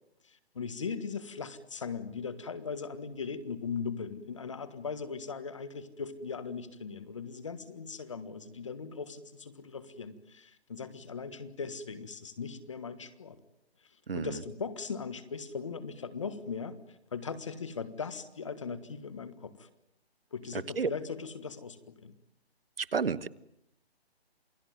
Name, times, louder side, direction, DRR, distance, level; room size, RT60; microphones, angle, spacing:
voice 1, 0.2-13.4 13.8-16.8 17.1-19.7 20.3-22.1, left 5 dB, 30° left, 13 dB, 1.5 m, -39 dB
voice 2, 14.1-14.4 20.5-20.9 22.8-23.3, right 5 dB, 60° right, 16 dB, 1.2 m, -31 dB
28.5 x 19.0 x 9.4 m, 0.79 s
hypercardioid pair, 175°, 32 cm